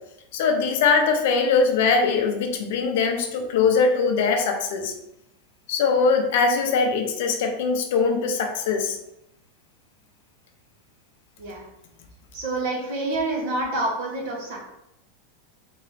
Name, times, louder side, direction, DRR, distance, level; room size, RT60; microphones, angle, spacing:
voice 1, 0.3-4.9 5.7-9.0, left 5 dB, 60° left, 4 dB, 0.6 m, -21 dB
voice 2, 12.3-14.6, right 2 dB, 50° right, -1 dB, 1.1 m, -27 dB
3.5 x 2.9 x 3.3 m, 0.84 s
supercardioid pair, 170°, 0 cm